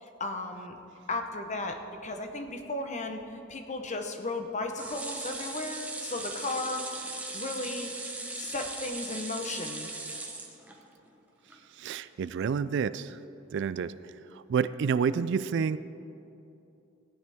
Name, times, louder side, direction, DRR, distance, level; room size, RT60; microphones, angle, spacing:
voice 1, 0.0-0.8 1.1-6.9 7.3-8.1 8.4-9.9, left 2 dB, 35° left, 5 dB, 0.9 m, -35 dB
sound 1, 4.8-11.1 11.5-11.6 11.9-12.0, right 2 dB, 10° right, 1.0 m, -39 dB
voice 2, 11.8-13.2 13.5-13.9 14.3-15.8, right 6 dB, 65° right, 15 dB, 0.3 m, -29 dB
16.5 x 10.0 x 3.5 m, 2.9 s
head